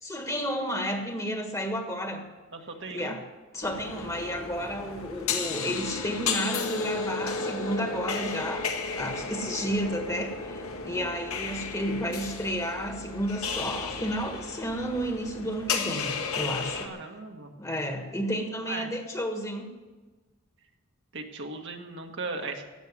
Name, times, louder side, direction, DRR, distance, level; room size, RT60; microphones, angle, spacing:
voice 1, 0.0-2.2 2.9-3.2 3.5-8.6 9.0-16.9 17.6-19.7, equal, 15° left, 4 dB, 1.6 m, -32 dB
voice 2, 2.5-3.2 16.8-17.5 18.6-18.9 21.1-22.6, right 3 dB, 60° right, 3 dB, 1.6 m, -37 dB
sound 1, 3.6-16.9, left 4 dB, 80° left, 1.7 m, -33 dB
16.5 x 6.6 x 9.7 m, 1.2 s
head